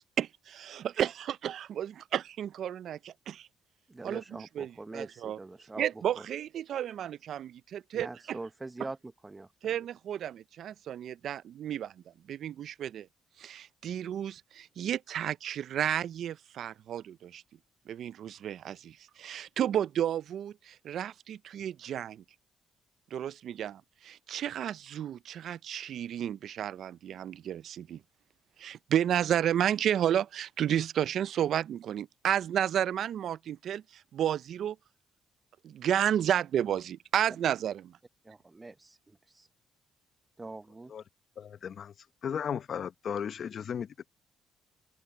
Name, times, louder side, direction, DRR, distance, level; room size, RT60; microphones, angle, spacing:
voice 1, 0.2-3.5 4.0-4.2 4.6-5.4 5.8-8.4 9.6-11.9 12.3-13.1 13.4-17.4 17.9-22.2 23.1-28.0 28.6-34.8 35.6-38.0, right 10 dB, 70° right, 0.4 m, -32 dB
voice 2, 3.9-6.3 7.9-9.7 38.2-39.5 40.4-40.9, right 2 dB, 20° right, 0.8 m, -44 dB
voice 3, 41.4-41.9 42.2-44.1, left 8 dB, 55° left, 0.7 m, -35 dB
cardioid pair, 90°, 0 cm